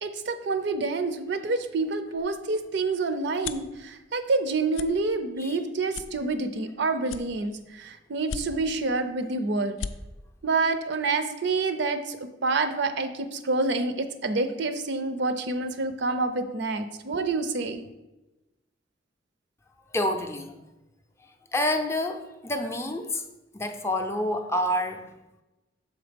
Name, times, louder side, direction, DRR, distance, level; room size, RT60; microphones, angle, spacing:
voice 1, 0.0-9.8 10.4-17.8, right 3 dB, 65° right, 9 dB, 0.5 m, -28 dB
sound 1, 2.1-3.8 4.2-4.4 4.7-4.9 5.4-5.5 5.9-6.7 7.0-7.7 8.2-8.8 9.3-9.4 9.6-9.9, left 6 dB, 85° left, 0.4 m, -37 dB
voice 2, 19.9-20.5 21.5-23.2 23.5-25.1, left 1 dB, 15° left, 5 dB, 0.5 m, -28 dB
6.5 x 4.0 x 5.1 m, 1.0 s
head